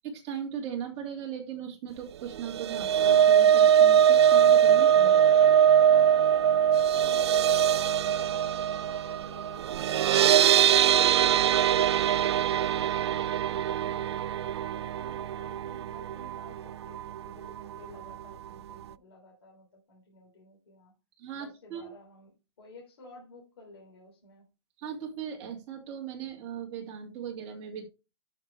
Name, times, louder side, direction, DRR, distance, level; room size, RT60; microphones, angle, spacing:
voice 1, 0.0-5.2 21.2-21.9 24.8-27.8, right 8 dB, 25° right, -1 dB, 2.5 m, -38 dB
sound 1, 2.4-16.6 16.9-17.2 17.5-17.6, right 9 dB, 65° right, 0.4 m, -22 dB
voice 2, 5.0-10.3 10.6-14.2 14.7-20.9 21.3-24.4, left 2 dB, 60° left, -1 dB, 3.4 m, -53 dB
12.5 x 6.0 x 3.4 m, 0.29 s
hypercardioid pair, 175°, 15 cm